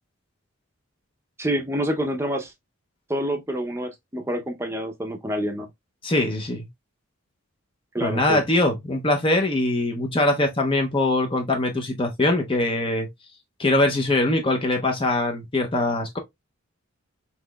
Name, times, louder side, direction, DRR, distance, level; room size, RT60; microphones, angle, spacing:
voice 1, 1.4-2.5 3.1-5.7 7.9-8.4, equal, 10° right, 0.7 m, -27 dB
voice 2, 6.0-6.7 8.0-13.1 13.6-16.2, left 2 dB, 25° left, 0.7 m, -22 dB
5.6 x 3.1 x 2.3 m
head